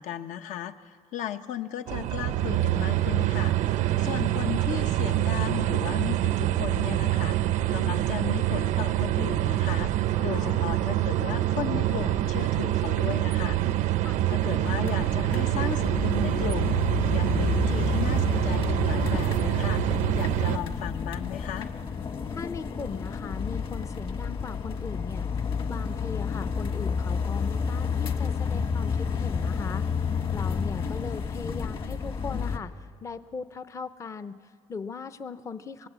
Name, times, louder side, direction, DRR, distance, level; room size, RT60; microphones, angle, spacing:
voice 1, 0.0-3.5 4.0-9.9 10.2-13.6 14.3-16.8 17.1-19.8 20.1-21.7, left 10 dB, 75° left, 8 dB, 1.0 m, -35 dB
AC air conditioner On Off, 1.9-20.6, right 14 dB, 90° right, 0.7 m, -26 dB
voice 2, 10.3-10.7 14.0-14.2 22.3-29.9 30.3-35.9, left 5 dB, 25° left, 12 dB, 0.6 m, -39 dB
sound 1, 14.2-32.6, left 6 dB, 45° left, 1.5 m, -30 dB
28.0 x 19.0 x 8.2 m, 2.1 s
cardioid pair, 160°, 13 cm